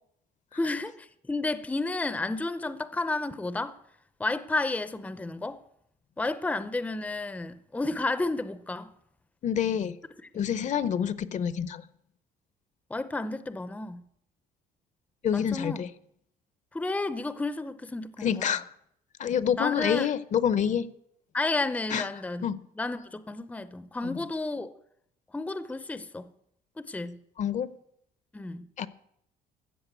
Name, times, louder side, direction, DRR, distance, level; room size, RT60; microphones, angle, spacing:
voice 1, 0.5-3.8 4.2-5.6 6.2-8.9 12.9-14.0 15.3-15.8 16.7-18.5 19.6-20.1 21.3-22.5 22.8-24.7 25.3-26.3 26.8-27.2 28.3-28.7, left 2 dB, 10° left, 0.6 m, -31 dB
voice 2, 9.4-10.0 10.3-11.8 15.2-15.9 18.2-18.7 19.2-20.9 21.9-22.1 22.4-22.6 24.0-24.2 27.4-27.7 28.8-28.9, left 8 dB, 45° left, 0.7 m, -27 dB
14.0 x 7.4 x 8.2 m
cardioid pair, 110°, 17 cm